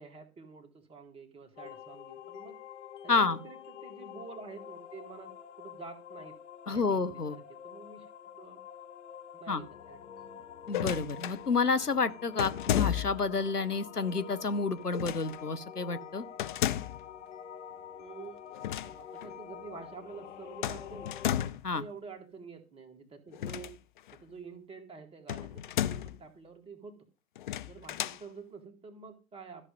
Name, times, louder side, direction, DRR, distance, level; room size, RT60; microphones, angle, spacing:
voice 1, 0.0-2.6 3.0-6.4 6.7-8.1 8.4-8.6 9.3-10.3 18.0-18.4 18.8-21.2 21.7-23.8 24.1-27.0 27.6-29.7, right 5 dB, 15° right, 3 dB, 2.1 m, -48 dB
sound 1, 1.6-21.5, left 8 dB, 50° left, 1.3 m, -47 dB
voice 2, 3.1-3.4 6.7-7.4 9.5-9.6 10.7-16.2 21.6-21.8, left 4 dB, 90° left, 13 dB, 1.1 m, -29 dB
sound 2, 10.7-11.4 12.4-13.3 14.9-15.4 16.4-17.1 18.5-18.9 19.2-19.3 20.6-21.7 23.3-24.2 25.3-26.2 27.4-28.2, left 12 dB, 35° left, 0.5 m, -33 dB
13.5 x 6.5 x 5.2 m, 0.32 s
figure-of-eight pair, 105°, 45 cm